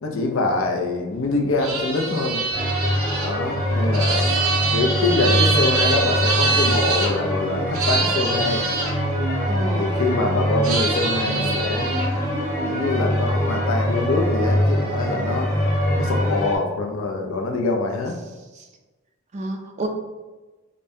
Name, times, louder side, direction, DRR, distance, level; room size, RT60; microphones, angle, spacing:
voice 1, 0.0-2.4 3.2-4.3 4.7-8.6 9.4-9.5 9.7-11.9 12.6-15.5 16.0-18.2, left 3 dB, 65° left, 2 dB, 0.5 m, -24 dB
sound 1, 1.6-7.1 7.7-8.9 10.6-12.1, right 4 dB, 70° right, 0.6 m, -24 dB
sound 2, 2.5-16.6, equal, 10° left, 0.9 m, -23 dB
voice 2, 9.5-10.0 18.6-18.7 19.3-19.9, right 2 dB, 30° right, 3 dB, 0.4 m, -29 dB
5.2 x 2.1 x 2.6 m, 1.2 s
head